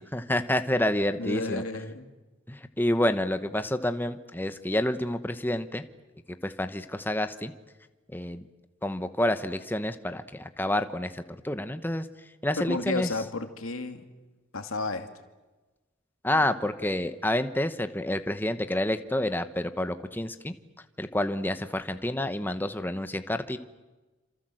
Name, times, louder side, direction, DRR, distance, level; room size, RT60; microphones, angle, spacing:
voice 1, 0.0-1.6 2.5-5.8 6.4-7.5 8.1-8.4 8.8-12.1 12.4-13.1 16.2-20.5 21.0-23.6, left 1 dB, 10° left, 9 dB, 1.0 m, -28 dB
voice 2, 1.2-2.1 12.6-14.0 14.5-15.1, left 3 dB, 85° left, 6 dB, 2.5 m, -32 dB
27.5 x 27.0 x 7.8 m, 1.2 s
head